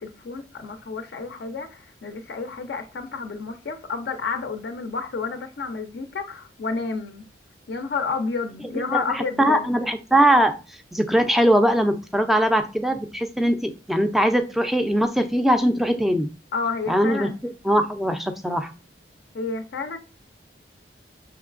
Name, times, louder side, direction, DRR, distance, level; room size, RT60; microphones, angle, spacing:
voice 1, 0.0-7.2 7.7-9.8 16.5-17.4 19.3-20.0, left 4 dB, 65° left, 0.4 m, -30 dB
voice 2, 8.9-10.5 10.9-16.3 16.9-17.3 17.6-18.7, equal, ahead, 0.3 m, -21 dB
5.7 x 3.0 x 2.4 m
head